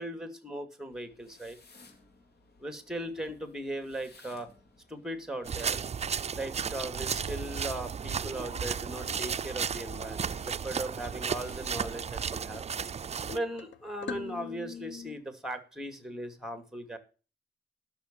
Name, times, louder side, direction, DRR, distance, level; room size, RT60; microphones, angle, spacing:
voice 1, 0.0-1.6 2.6-4.5 4.9-5.8 6.3-12.6 13.3-17.0, right 1 dB, 5° right, 9 dB, 2.6 m, -38 dB
sound 1, 0.9-13.1, left 2 dB, 60° left, 3.1 m, -59 dB
sound 2, 5.4-13.4, right 7 dB, 35° right, 0.4 m, -34 dB
sound 3, 8.5-15.2, left 7 dB, 85° left, 1.1 m, -46 dB
11.5 x 6.5 x 6.9 m, 0.35 s
cardioid pair, 80°, 18 cm